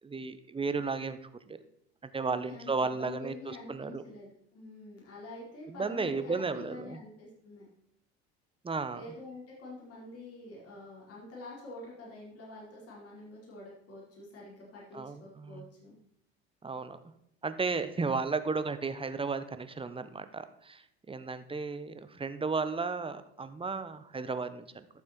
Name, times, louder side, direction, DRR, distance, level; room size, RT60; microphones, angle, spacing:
voice 1, 0.0-1.2 1.5-1.6 2.0-4.0 5.7-7.0 8.6-9.0 14.9-15.6 16.6-17.0 17.4-24.9, right 4 dB, 15° right, 11 dB, 0.9 m, -34 dB
voice 2, 2.3-7.7 8.9-16.0, left 2 dB, 45° left, -4 dB, 4.7 m, -47 dB
12.0 x 7.2 x 4.5 m, 0.74 s
hypercardioid pair, 70°, 33 cm